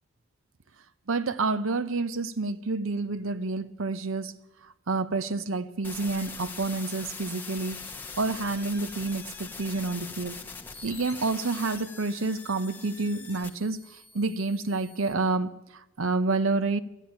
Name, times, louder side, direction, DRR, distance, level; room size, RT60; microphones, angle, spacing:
voice 1, 1.1-4.3 4.6-7.9 8.2-10.4 10.8-16.8, right 3 dB, 70° right, 0.7 m, -29 dB
sound 1, 5.8-15.1, left 4 dB, 10° left, 0.8 m, -42 dB
13.0 x 10.5 x 9.2 m
head